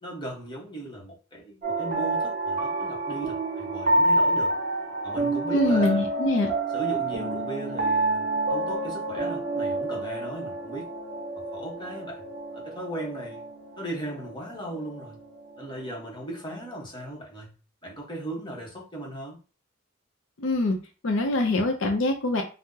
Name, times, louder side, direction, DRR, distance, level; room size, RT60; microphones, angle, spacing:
voice 1, 0.0-4.5 5.0-6.0 6.7-10.9 11.5-13.4 13.8-15.2 15.6-17.5 17.8-19.4, right 1 dB, 25° left, -3 dB, 1.0 m, -37 dB
sound 1, 1.6-15.9, right 2 dB, 45° right, 0.7 m, -28 dB
voice 2, 5.5-6.5 20.4-20.8 21.0-22.4, left 2 dB, 70° left, 3 dB, 0.5 m, -24 dB
2.7 x 2.0 x 3.6 m, 0.34 s
head